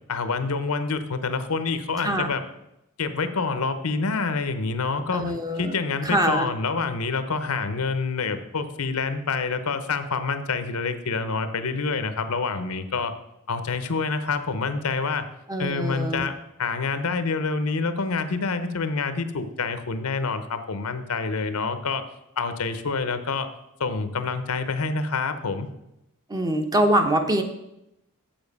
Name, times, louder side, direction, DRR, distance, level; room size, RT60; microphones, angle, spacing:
voice 1, 0.1-2.4 3.0-13.1 13.5-15.2 15.6-22.0 22.4-23.5 23.8-25.7, left 4 dB, 75° left, 10 dB, 0.8 m, -27 dB
voice 2, 5.1-5.8 6.0-6.5 15.5-16.2 26.3-27.4, right 1 dB, 15° right, 5 dB, 0.8 m, -23 dB
7.6 x 7.0 x 5.3 m, 0.86 s
head